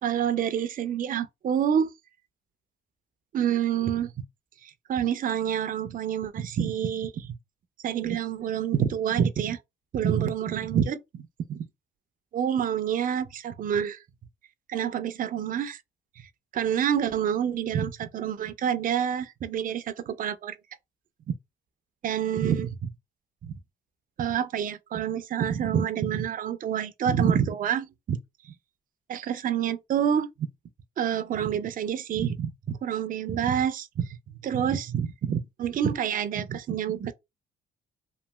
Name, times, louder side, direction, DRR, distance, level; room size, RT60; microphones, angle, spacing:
voice 1, 0.0-1.9 3.3-4.1 4.6-7.3 7.8-9.6 9.9-11.7 12.3-14.0 14.7-15.8 16.5-20.6 22.0-22.9 23.4-23.6 24.2-28.2 28.4-28.5 29.1-30.5 31.0-34.2 34.4-37.1, right 8 dB, 45° right, 0.4 m, -27 dB
3.0 x 2.5 x 2.2 m
cardioid pair, 90°, 20 cm